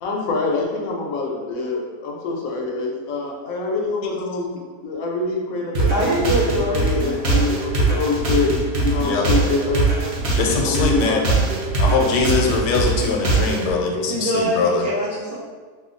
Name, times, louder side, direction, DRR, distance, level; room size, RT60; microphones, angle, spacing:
voice 1, 0.0-6.4 6.7-11.7, left 3 dB, 70° left, -1 dB, 0.9 m, -25 dB
sound 1, 5.7-13.7, right 3 dB, 60° right, 0.8 m, -21 dB
voice 2, 5.9-6.9 14.0-15.3, right 1 dB, 75° right, -8 dB, 0.4 m, -23 dB
voice 3, 10.4-11.2 11.8-14.8, left 4 dB, 85° left, 1 dB, 1.2 m, -21 dB
2.8 x 2.3 x 3.7 m, 1.5 s
omnidirectional pair, 1.7 m